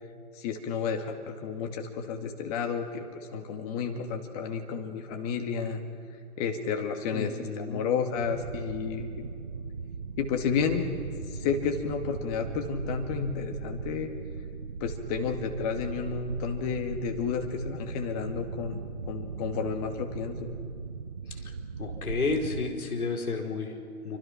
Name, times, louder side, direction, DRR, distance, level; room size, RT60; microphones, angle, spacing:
voice 1, 0.3-5.8 6.4-7.3 7.6-9.3 10.2-10.9 11.3-14.1 14.8-18.8 19.1-20.5, left 6 dB, 25° left, 4 dB, 2.2 m, -31 dB
voice 2, 7.1-7.9 21.3-21.5 21.8-24.2, left 4 dB, 70° left, 2 dB, 4.6 m, -32 dB
sound 1, 8.1-22.7, right 5 dB, 20° right, 0.5 m, -38 dB
27.0 x 25.0 x 6.0 m, 2.4 s
figure-of-eight pair, 140°, 44 cm